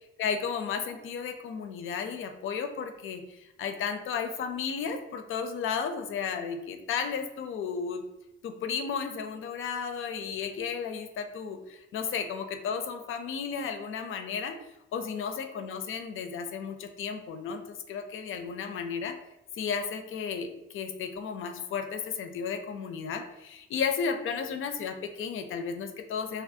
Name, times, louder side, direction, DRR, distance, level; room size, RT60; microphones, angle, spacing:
voice 1, 0.2-8.0 8.4-14.6 14.9-19.1 19.5-26.4, left 6 dB, 45° left, 7 dB, 0.4 m, -33 dB
2.3 x 2.0 x 2.6 m, 0.93 s
figure-of-eight pair, 45°, 31 cm